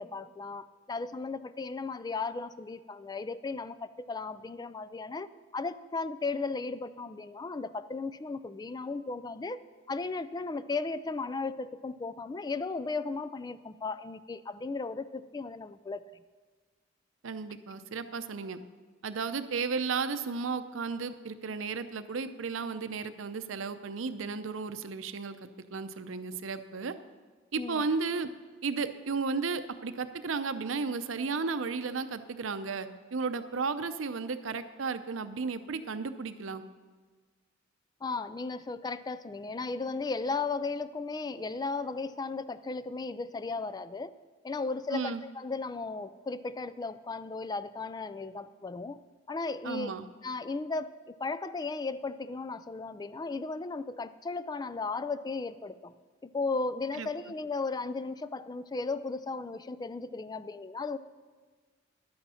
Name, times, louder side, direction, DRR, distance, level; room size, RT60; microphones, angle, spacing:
voice 1, 0.0-9.6 9.9-16.0 27.6-27.8 38.0-44.1 44.4-49.0 49.3-49.9 50.2-55.9 56.2-61.0, left 3 dB, 20° left, 14 dB, 0.3 m, -35 dB
voice 2, 17.2-18.6 19.0-26.9 27.5-28.3 28.6-36.6 44.9-45.2 49.6-50.1 56.9-57.1, right 4 dB, 85° right, 11 dB, 0.6 m, -34 dB
11.5 x 8.7 x 5.6 m, 1.4 s
head